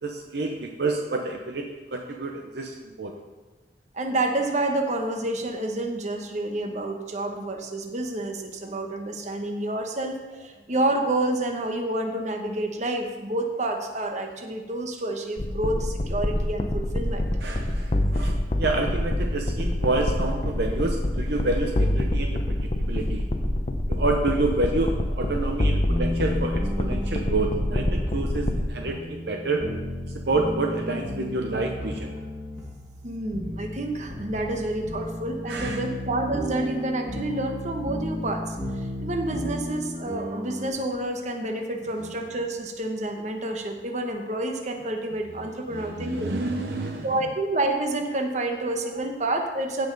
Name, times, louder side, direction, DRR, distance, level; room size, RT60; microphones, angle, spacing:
voice 1, 0.0-3.1 17.4-23.2 23.9-29.6 30.1-32.1 35.5-35.8 42.0-42.1 45.7-47.1, right 2 dB, 60° right, 2 dB, 0.8 m, -28 dB
voice 2, 3.9-17.2 33.0-46.4 47.0-49.9, right 2 dB, 40° right, 3 dB, 1.1 m, -29 dB
sound 1, 15.4-28.7, left 1 dB, 35° left, 0.7 m, -26 dB
sound 2, 25.9-40.7, left 1 dB, 10° right, 2.0 m, -34 dB
15.5 x 5.3 x 4.0 m, 1.2 s
head